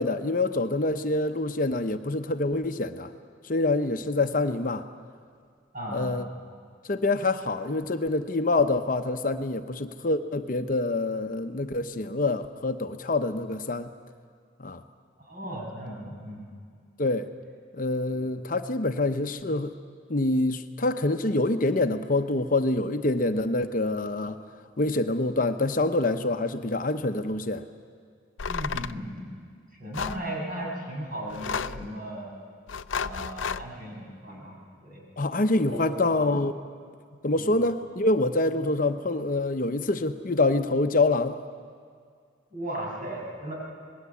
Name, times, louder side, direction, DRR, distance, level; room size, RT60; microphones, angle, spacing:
voice 1, 0.0-3.1 3.4-4.9 5.9-6.3 6.9-13.9 14.6-14.8 17.0-17.3 17.7-19.7 20.1-24.4 24.8-27.6 35.2-36.5 37.2-41.4, left 2 dB, 45° left, 8 dB, 0.8 m, -26 dB
voice 2, 5.7-6.2 15.2-16.5 18.1-18.3 28.5-29.3 29.7-32.3 33.0-34.6 34.8-35.0 35.7-36.0 37.3-37.5 42.5-43.5, right 1 dB, 45° right, -2 dB, 7.0 m, -36 dB
sound 1, 28.4-29.0 29.9-30.2 31.3-31.9 32.7-33.7, left 6 dB, 80° left, 0.5 m, -32 dB
26.5 x 20.0 x 8.4 m, 2.1 s
head